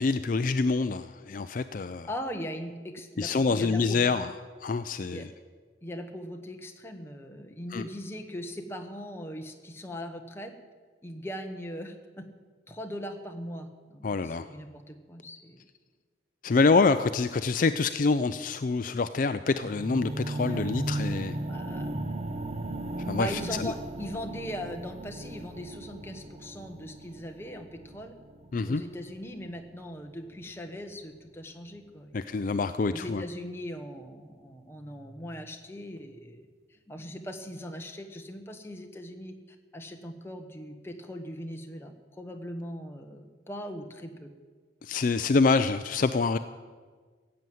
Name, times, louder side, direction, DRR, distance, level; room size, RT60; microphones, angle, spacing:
voice 1, 0.0-2.1 3.2-4.3 4.6-5.3 7.7-7.8 14.0-14.5 16.4-21.4 23.0-23.7 28.5-28.8 32.1-33.2 44.8-46.4, left 4 dB, 45° left, 11 dB, 0.4 m, -26 dB
voice 2, 2.0-4.1 5.1-5.3 5.8-10.5 11.0-12.3 12.7-15.6 17.6-17.7 20.5-20.6 21.5-21.9 23.2-28.2 28.6-32.4 32.9-39.4 39.7-44.3, equal, 15° left, 4 dB, 1.1 m, -40 dB
sound 1, 19.6-29.7 30.4-30.5, right 2 dB, 35° right, 0.7 m, -36 dB
16.0 x 7.7 x 9.3 m, 1.5 s
head